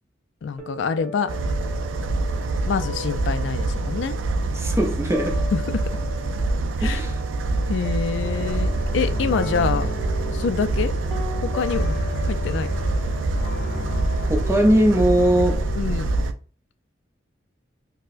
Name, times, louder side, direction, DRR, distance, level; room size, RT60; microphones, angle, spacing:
voice 1, 0.4-1.3 2.7-4.2 5.5-5.9 6.8-7.0 7.7-9.9 10.3-10.9 11.4-12.0 12.3-12.7 15.8-16.1, left 5 dB, 70° left, 0.3 m, -26 dB
sound 1, 0.6-6.6 6.8-14.6, left 2 dB, 5° left, 0.9 m, -39 dB
sound 2, 1.3-16.3, right 2 dB, 80° right, 0.4 m, -25 dB
voice 2, 4.4-5.4 6.8-7.2 14.3-15.6, equal, 15° right, 0.6 m, -20 dB
sound 3, 8.2-16.1, left 2 dB, 50° left, 0.7 m, -33 dB
4.3 x 2.1 x 2.4 m
head